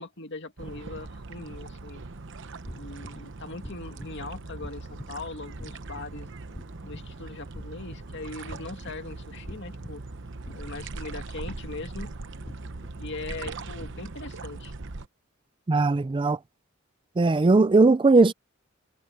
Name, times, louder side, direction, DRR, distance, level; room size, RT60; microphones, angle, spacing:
voice 1, 0.0-2.0 2.7-6.3 6.8-10.0 10.5-12.1 13.0-14.7, left 3 dB, 60° left, 2.3 m, -40 dB
sound 1, 0.6-15.1, right 3 dB, 60° right, 0.9 m, -40 dB
sound 2, 2.6-14.0, equal, 25° left, 5.8 m, -47 dB
voice 2, 15.7-16.4 17.2-18.3, right 3 dB, 25° right, 0.4 m, -19 dB
head